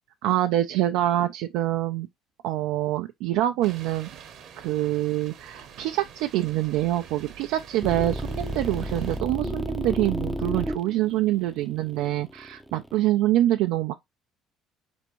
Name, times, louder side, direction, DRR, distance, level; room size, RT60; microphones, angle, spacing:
voice 1, 0.2-2.1 2.4-4.1 4.6-13.9, right 14 dB, 80° right, 0.4 m, -25 dB
sound 1, 3.6-9.2, right 8 dB, 65° right, 0.9 m, -47 dB
sound 2, 7.8-13.0, right 1 dB, ahead, 0.6 m, -32 dB
4.2 x 3.5 x 3.0 m
supercardioid pair, 90°, 0 cm